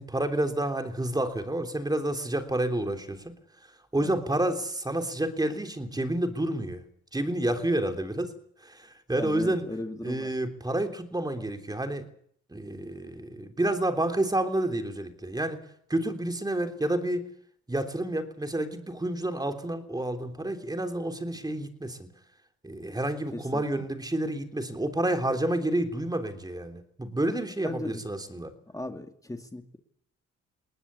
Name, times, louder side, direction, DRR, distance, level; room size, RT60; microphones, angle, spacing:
voice 1, 0.0-3.3 3.9-6.8 7.1-8.3 8.6-9.6 10.0-12.1 12.5-15.6 15.9-17.2 17.7-22.0 22.6-28.5, right 1 dB, 15° right, 5 dB, 3.3 m, -29 dB
voice 2, 9.2-10.3 23.3-23.6 27.6-28.0 28.7-29.8, left 2 dB, 10° left, 6 dB, 2.3 m, -37 dB
20.5 x 19.0 x 8.5 m, 0.67 s
cardioid pair, 90°, 30 cm